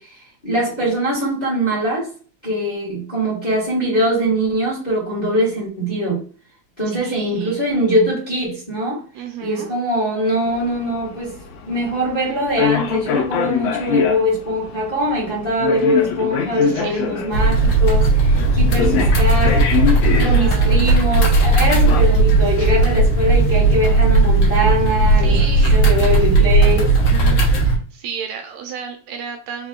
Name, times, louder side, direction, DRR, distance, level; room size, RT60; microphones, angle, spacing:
voice 1, 0.0-2.1 2.4-6.2 6.8-9.0 9.4-11.4 11.6-19.9 20.2-25.4 25.7-27.0, equal, 20° left, 1.3 m, -22 dB
voice 2, 6.9-7.7 9.1-9.7 16.5-17.0 20.1-21.0 25.2-26.6 27.4-29.7, right 7 dB, 75° right, 2.0 m, -33 dB
sound 1, 10.5-22.0, left 7 dB, 85° left, 2.1 m, -25 dB
sound 2, 17.3-27.8, right 2 dB, 60° left, 1.9 m, -15 dB
5.2 x 3.4 x 2.4 m
omnidirectional pair, 3.4 m